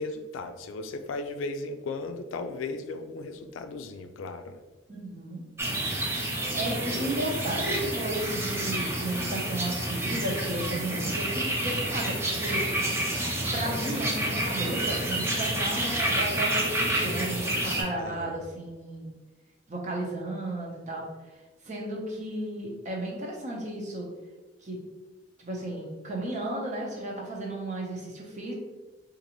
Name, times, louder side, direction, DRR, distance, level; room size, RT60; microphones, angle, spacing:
voice 1, 0.0-4.6 18.0-18.4, left 3 dB, 85° left, 8 dB, 0.4 m, -36 dB
voice 2, 4.9-5.4 6.5-13.2 13.5-19.1 19.7-21.1 21.6-24.1 24.6-24.8 25.4-28.5, right 1 dB, 40° right, -2 dB, 0.8 m, -34 dB
sound 1, 5.6-17.8, right 1 dB, 15° right, 0.5 m, -29 dB
3.9 x 2.5 x 2.9 m, 1.2 s
head